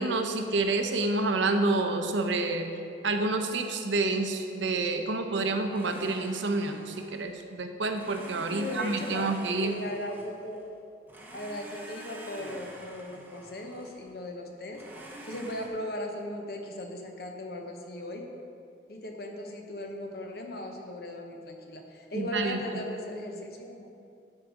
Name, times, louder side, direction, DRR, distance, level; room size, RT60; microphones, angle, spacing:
voice 1, 0.0-2.7 3.0-7.3 7.6-9.7 22.1-22.8, right 3 dB, 85° right, 6 dB, 0.8 m, -28 dB
Domestic sounds home sounds, 5.7-7.4 7.9-10.7 11.1-14.1 14.7-15.7, right 1 dB, 10° right, 0.9 m, -47 dB
voice 2, 8.5-9.3 9.6-10.6 11.3-18.3 18.9-23.9, left 1 dB, 55° left, 3 dB, 1.0 m, -38 dB
11.5 x 4.8 x 5.0 m, 2.5 s
head